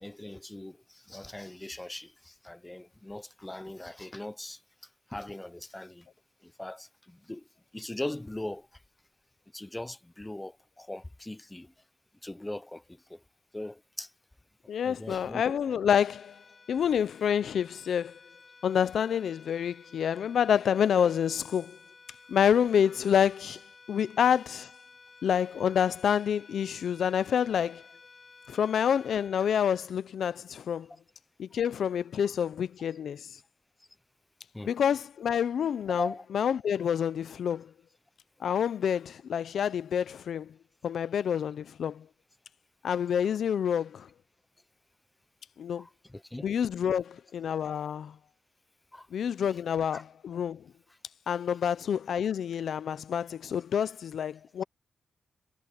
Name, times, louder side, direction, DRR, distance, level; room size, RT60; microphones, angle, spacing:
voice 1, 0.0-4.6 5.1-6.1 6.4-7.4 7.7-8.7 9.5-11.7 12.2-13.2 13.5-14.1 14.8-15.6 34.5-34.7 36.0-36.2 45.7-46.5 48.9-49.1 49.9-50.0, left 1 dB, 10° left, 0.7 m, -40 dB
voice 2, 14.7-16.4 16.7-18.2 18.6-21.8 22.3-24.7 25.2-27.8 28.5-30.9 31.4-33.4 34.6-37.7 38.4-40.5 40.8-42.1 42.8-44.1 45.6-45.9 46.4-48.2 49.1-50.7 51.3-54.6, left 8 dB, 70° left, 0.5 m, -28 dB
sound 1, 15.9-30.5, left 4 dB, 35° left, 6.8 m, -55 dB
cardioid pair, 110°, 0 cm